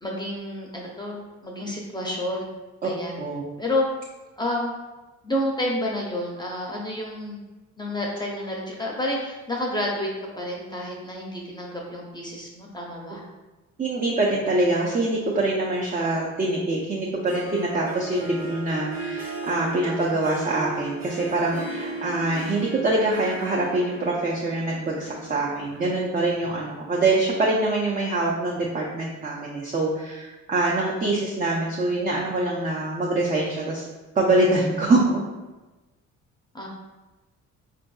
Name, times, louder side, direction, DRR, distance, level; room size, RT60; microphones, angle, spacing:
voice 1, 0.0-2.5 2.8-3.2 3.6-3.8 4.4-4.7 5.2-7.4 7.8-10.1 10.4-13.2 19.8-20.1 36.5-36.7, left 1 dB, 15° left, -2 dB, 0.6 m, -29 dB
voice 2, 13.8-33.9 34.1-35.2, right 2 dB, 30° right, -3 dB, 0.5 m, -24 dB
Harp, 17.0-26.0, right 2 dB, 60° right, 1.2 m, -36 dB
4.3 x 2.5 x 2.3 m, 1.2 s
cardioid pair, 90°, 30 cm